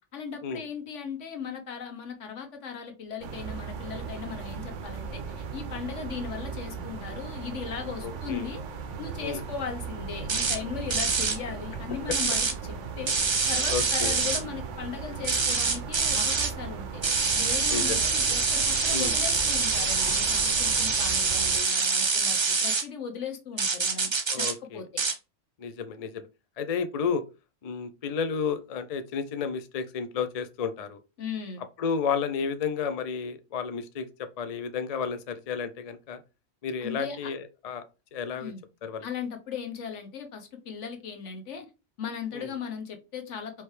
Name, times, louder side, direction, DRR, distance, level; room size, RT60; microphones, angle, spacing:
voice 1, 0.1-8.6 9.0-13.1 13.5-17.0 17.3-24.4 24.7-25.0 31.2-31.6 36.8-37.3 38.4-38.6 39.0-41.6 42.0-43.5, left 6 dB, 75° left, 1.3 m, -37 dB
sound 1, 3.2-21.6, right 5 dB, 80° right, 1.0 m, -37 dB
voice 2, 8.0-8.5 9.2-9.4 13.7-14.1 17.7-18.4 18.9-19.1 24.3-24.8 25.6-26.2 26.6-27.2 27.6-31.0 31.6-36.2 36.6-37.8 38.1-38.5 38.8-39.1 42.3-42.5, left 6 dB, 50° left, 0.4 m, -32 dB
sound 2, 10.3-10.6 10.9-11.4 12.1-12.5 13.1-14.4 15.2-16.5 17.0-22.8 23.6-24.5 25.0-25.1, right 4 dB, 40° right, 0.4 m, -25 dB
4.7 x 2.9 x 3.2 m
omnidirectional pair, 1.3 m